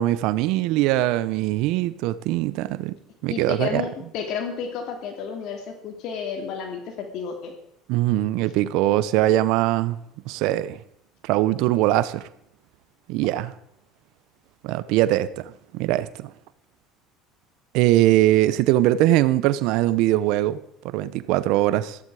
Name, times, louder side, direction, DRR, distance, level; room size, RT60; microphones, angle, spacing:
voice 1, 0.0-2.9 3.2-3.8 7.9-10.0 10.3-10.8 11.2-12.3 13.1-13.5 14.6-16.3 17.7-20.6 20.8-22.0, right 15 dB, 70° right, 0.7 m, -21 dB
voice 2, 3.3-7.5, left 6 dB, 60° left, 2.6 m, -31 dB
15.0 x 14.5 x 4.8 m
supercardioid pair, 115°, 0 cm